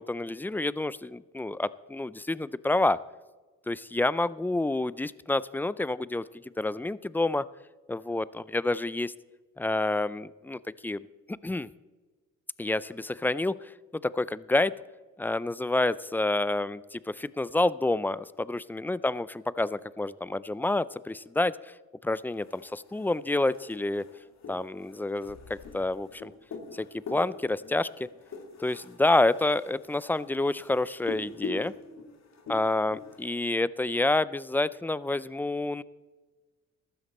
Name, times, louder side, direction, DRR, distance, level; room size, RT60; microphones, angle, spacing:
voice 1, 0.0-3.0 3.7-6.2 6.6-7.5 7.9-9.1 9.6-11.0 11.4-11.7 12.6-14.7 15.2-21.5 22.0-24.0 24.5-26.3 26.7-28.1 28.6-31.7 32.5-35.8, left 2 dB, 5° left, 18 dB, 0.3 m, -28 dB
sound 1, 22.3-33.5, left 4 dB, 65° left, 2.5 m, -44 dB
14.0 x 12.5 x 4.2 m, 1.3 s
cardioid pair, 90°, 30 cm